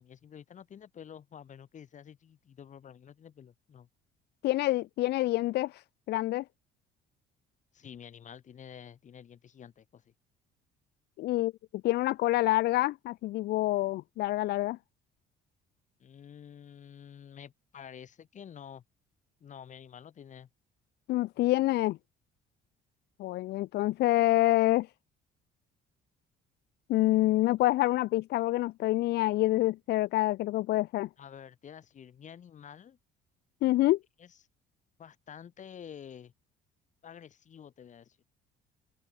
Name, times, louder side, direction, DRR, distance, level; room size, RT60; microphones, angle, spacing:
voice 1, 0.0-3.9 7.7-10.1 16.0-18.8 19.4-20.5 31.2-33.0 34.2-34.4 35.0-36.3 37.0-38.2, left 8 dB, 45° left, 7.0 m, -49 dB
voice 2, 4.4-5.8 6.1-6.4 11.2-11.5 11.8-14.8 21.1-22.0 23.2-24.9 26.9-31.1 33.6-34.0, left 17 dB, 80° left, 1.6 m, -27 dB
open air
cardioid pair, 110°, 17 cm